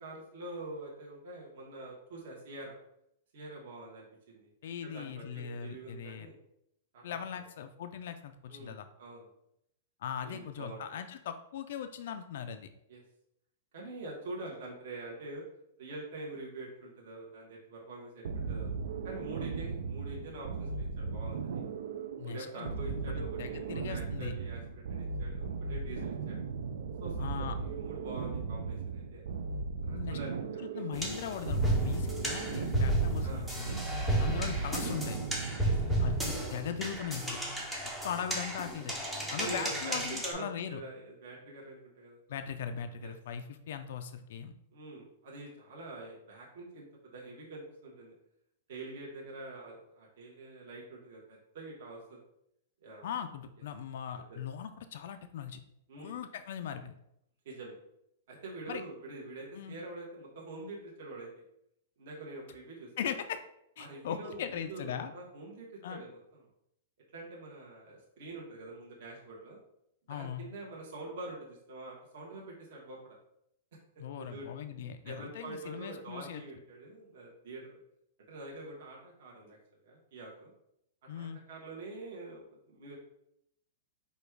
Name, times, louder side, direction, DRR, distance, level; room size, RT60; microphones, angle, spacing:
voice 1, 0.0-2.7 3.3-4.5 4.8-6.3 6.9-7.4 8.5-9.3 10.2-10.8 12.9-13.0 13.7-15.4 15.8-18.7 19.0-21.6 22.2-26.4 27.0-29.3 29.9-30.8 32.0-32.2 33.2-33.6 34.1-34.2 34.6-34.7 35.6-35.9 39.2-42.2 43.0-43.1 44.7-46.9 47.1-48.1 48.7-52.2 52.8-53.1 55.9-56.1 57.4-57.8 58.3-61.4 62.0-62.9 63.8-66.4 67.1-69.6 70.1-73.2 74.2-74.5 75.0-77.8 78.3-79.6 79.8-80.5 81.1-83.0, right 2 dB, 45° right, -3 dB, 1.1 m, -45 dB
voice 2, 4.6-6.3 7.0-8.9 10.0-12.7 22.2-22.7 23.1-24.4 27.2-27.6 29.9-30.2 30.6-33.8 34.2-35.2 36.0-37.4 38.0-39.0 39.3-40.8 42.3-44.5 53.0-55.6 56.0-56.9 58.7-58.8 59.5-59.8 63.0-63.4 63.8-65.1 65.8-66.0 70.1-70.4 74.0-76.4 81.1-81.4, left 8 dB, 50° left, 8 dB, 0.3 m, -39 dB
sound 1, 18.2-35.9, right 5 dB, 65° right, 0.3 m, -37 dB
sound 2, 30.9-40.3, right 1 dB, 5° right, 0.5 m, -33 dB
5.0 x 2.3 x 4.5 m, 0.77 s
supercardioid pair, 180°, 0 cm